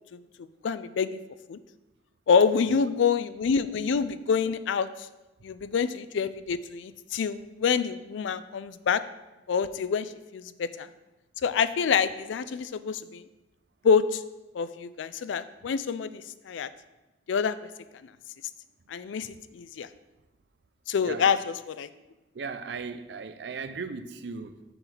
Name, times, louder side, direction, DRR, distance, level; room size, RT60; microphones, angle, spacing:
voice 1, 0.6-1.2 1.5-1.6 2.3-5.1 5.4-9.0 9.5-10.9 11.4-13.2 13.8-14.2 14.5-16.7 17.3-17.6 18.9-19.9 20.9-21.9, left 6 dB, 90° left, 14 dB, 0.4 m, -27 dB
voice 2, 21.0-21.4 22.3-24.6, right 5 dB, 65° right, 11 dB, 0.4 m, -37 dB
6.8 x 4.0 x 5.9 m, 1.0 s
head